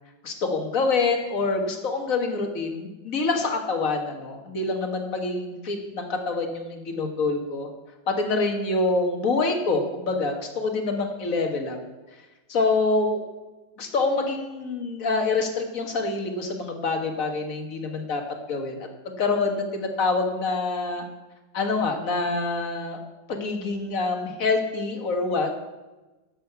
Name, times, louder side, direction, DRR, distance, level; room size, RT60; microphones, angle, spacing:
voice 1, 0.2-7.7 8.1-11.8 12.5-13.2 13.8-18.2 18.5-18.8 19.1-21.0 21.5-23.0 23.3-25.6, left 3 dB, 45° left, 4 dB, 1.9 m, -26 dB
11.5 x 6.7 x 8.1 m, 1.1 s
omnidirectional pair, 2.1 m